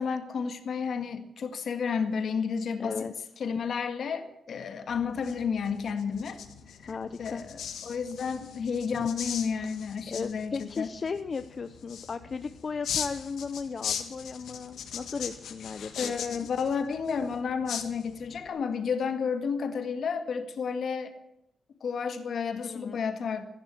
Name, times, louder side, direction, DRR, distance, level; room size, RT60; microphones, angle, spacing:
voice 1, 0.0-3.1 3.4-6.4 6.8-10.9 16.0-21.1 21.8-23.5, left 6 dB, 60° left, 8 dB, 1.8 m, -31 dB
voice 2, 2.8-3.1 6.9-7.4 9.0-9.1 10.1-16.4 22.6-23.0, left 5 dB, 35° left, 10 dB, 0.6 m, -36 dB
sound 1, 4.9-18.5, left 8 dB, 90° left, 1.7 m, -40 dB
14.5 x 11.5 x 8.3 m, 0.84 s
wide cardioid pair, 145°, 0 cm